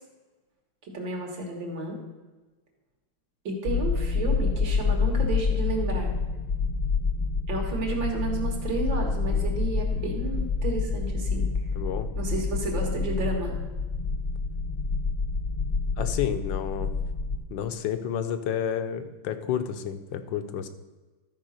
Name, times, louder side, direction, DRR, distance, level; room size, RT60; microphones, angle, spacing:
voice 1, 0.9-2.0 3.4-6.1 7.5-11.5 12.2-13.6, right 2 dB, 60° right, 0 dB, 2.5 m, -32 dB
sound 1, 3.7-17.4, left 4 dB, 35° left, 0.8 m, -27 dB
voice 2, 11.7-12.1 16.0-16.9 17.5-20.7, left 9 dB, 70° left, 9 dB, 1.4 m, -30 dB
13.0 x 4.7 x 6.4 m, 1.2 s
omnidirectional pair, 2.3 m